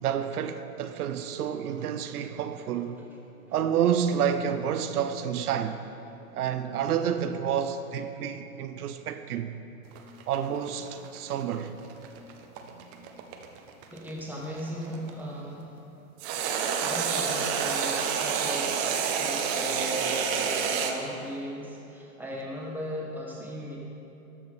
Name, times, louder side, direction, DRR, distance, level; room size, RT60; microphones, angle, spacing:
voice 1, 0.0-3.0 3.5-5.8 6.3-9.6 10.3-11.7 19.1-19.2, right 8 dB, 90° right, 0.6 m, -29 dB
sound 1, 9.9-15.1 16.2-20.9, right 6 dB, 25° right, 0.3 m, -29 dB
voice 2, 13.9-15.7 16.7-23.8, equal, 5° right, 1.4 m, -37 dB
13.0 x 5.0 x 4.2 m
hypercardioid pair, 125°, 44 cm